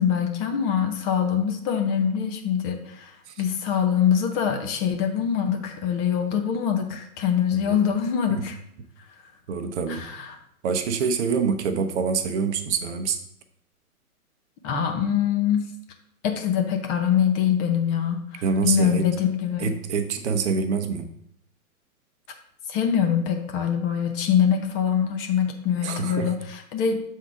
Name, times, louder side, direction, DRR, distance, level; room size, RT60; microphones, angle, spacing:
voice 1, 0.0-8.6 9.9-10.4 14.6-15.7 16.2-19.7 22.7-27.0, left 8 dB, 25° left, 4 dB, 0.8 m, -24 dB
voice 2, 9.5-10.0 10.6-13.2 18.4-19.1 19.6-21.1 25.8-26.3, right 5 dB, 50° right, 7 dB, 0.8 m, -26 dB
7.1 x 3.7 x 4.9 m, 0.72 s
figure-of-eight pair, 115°, 45 cm